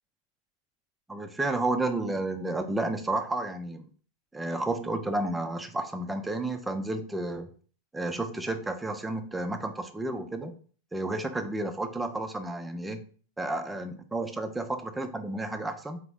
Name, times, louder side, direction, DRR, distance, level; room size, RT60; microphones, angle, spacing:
voice 1, 1.1-3.8 4.3-7.5 7.9-10.5 10.9-13.0 13.4-16.0, right 2 dB, 10° right, 6 dB, 0.5 m, -31 dB
3.9 x 2.8 x 3.5 m, 0.43 s
figure-of-eight pair, 90°, 0 cm